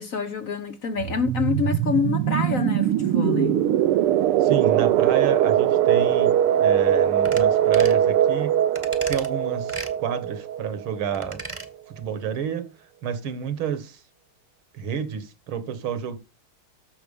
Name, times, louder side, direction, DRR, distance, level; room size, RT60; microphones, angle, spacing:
voice 1, 0.0-3.6, left 5 dB, 55° left, 1.0 m, -27 dB
sound 1, 1.0-11.5, right 11 dB, 85° right, 1.7 m, -21 dB
voice 2, 4.4-8.6 9.1-11.4 11.9-12.7 13.0-14.0 14.7-16.2, right 8 dB, 70° right, 2.2 m, -29 dB
sound 2, 7.2-7.5 7.7-8.0 8.8-9.3 9.7-9.9 11.1-11.7 12.0-12.1, right 2 dB, 20° right, 1.1 m, -36 dB
14.0 x 5.9 x 5.3 m
omnidirectional pair, 2.4 m